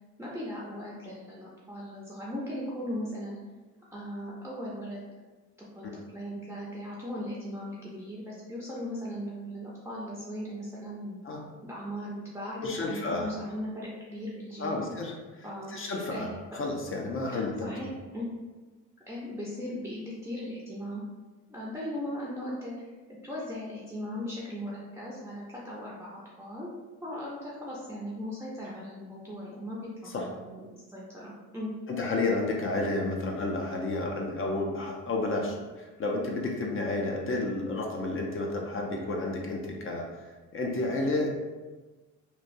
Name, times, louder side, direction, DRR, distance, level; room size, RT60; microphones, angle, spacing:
voice 1, 0.2-3.3 3.9-5.0 5.6-11.2 11.6-14.9 15.4-15.7 16.1-16.3 17.3-18.3 19.1-21.0 21.5-22.9 23.2-26.7 27.0-31.7, equal, 10° right, -6 dB, 0.5 m, -38 dB
voice 2, 12.6-13.3 14.6-17.9 30.1-30.3 31.9-40.3 40.5-41.3, left 2 dB, 45° left, 0 dB, 0.6 m, -31 dB
3.1 x 2.2 x 2.6 m, 1.3 s
cardioid pair, 90°, 30 cm